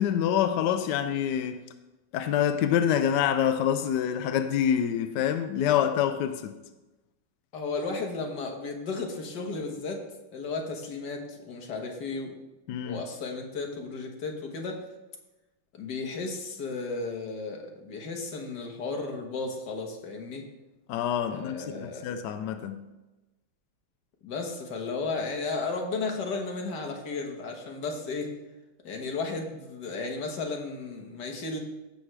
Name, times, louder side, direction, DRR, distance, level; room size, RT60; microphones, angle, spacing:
voice 1, 0.0-1.6 2.1-6.6 12.7-13.0 20.9-22.9, left 9 dB, 80° left, 0.9 m, -26 dB
voice 2, 7.5-10.0 10.3-12.3 12.8-14.8 15.8-20.4 21.3-22.1 24.2-28.3 28.8-31.6, left 3 dB, 55° left, 1.8 m, -34 dB
15.5 x 6.3 x 3.3 m
omnidirectional pair, 2.3 m